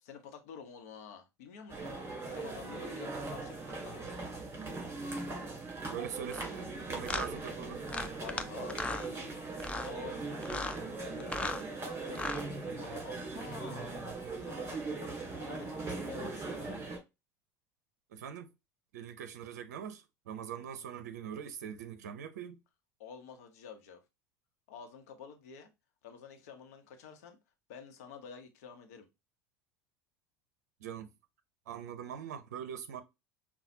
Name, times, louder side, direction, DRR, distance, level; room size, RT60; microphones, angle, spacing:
voice 1, 0.0-1.9 2.2-4.3 8.2-12.3 12.6-14.0 14.3-16.8 23.0-24.0 24.7-25.7 26.0-27.4 27.7-29.1, left 6 dB, 65° left, 1.0 m, -49 dB
sound 1, 1.7-17.0, right 3 dB, 25° right, 2.1 m, -40 dB
voice 2, 5.9-7.8 18.1-18.5 18.9-22.6 30.8-31.1 31.7-33.0, right 8 dB, 70° right, 0.5 m, -42 dB
sound 2, 6.3-6.5 7.1-7.3 7.9-8.4 8.7-9.1 9.6-9.9 10.4-10.8 11.2-11.6 12.1-12.4, left 3 dB, 15° left, 0.5 m, -36 dB
5.7 x 2.3 x 2.7 m
hypercardioid pair, 70°, 9 cm